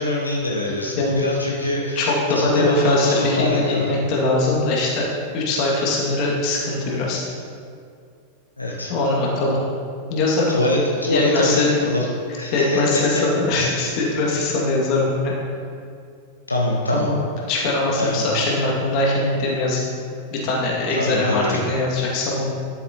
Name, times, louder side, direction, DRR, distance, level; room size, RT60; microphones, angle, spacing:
voice 1, 0.0-3.9 8.6-8.9 10.5-12.1 12.4-13.0 16.5-17.1 18.0-18.2 20.9-21.6, left 1 dB, 85° left, -3 dB, 0.8 m, -23 dB
voice 2, 2.0-5.1 5.3-7.2 8.9-9.6 10.1-10.6 11.1-11.7 12.5-15.3 16.9-17.1 17.5-19.8 20.3-22.5, left 2 dB, 40° left, -3 dB, 2.1 m, -21 dB
12.0 x 7.0 x 2.9 m, 2.3 s
figure-of-eight pair, 90°, 0 cm